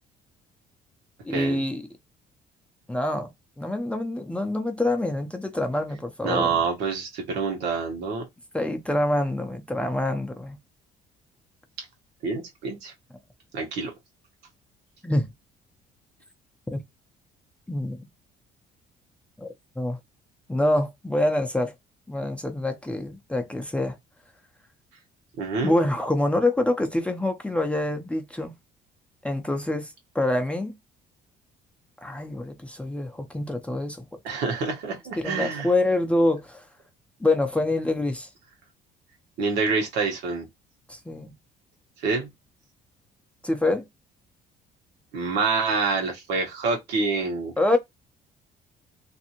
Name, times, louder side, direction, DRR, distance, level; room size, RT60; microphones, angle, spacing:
voice 1, 1.2-1.9 2.9-3.3 3.6-6.6 8.5-10.6 15.0-15.3 16.7-16.8 17.7-18.0 19.4-19.5 19.8-20.0 20.5-21.7 22.1-24.0 25.6-28.5 29.2-30.8 32.0-34.1 35.2-36.7 37.2-38.3 40.9-41.3 43.4-43.9 47.6-47.8, left 1 dB, 5° left, 0.5 m, -26 dB
voice 2, 6.2-8.2 12.2-12.9 13.5-13.9 25.4-25.7 34.2-35.7 39.4-40.5 42.0-42.3 45.1-47.5, right 4 dB, 80° right, 1.1 m, -27 dB
2.6 x 2.5 x 2.8 m
cardioid pair, 110°, 17 cm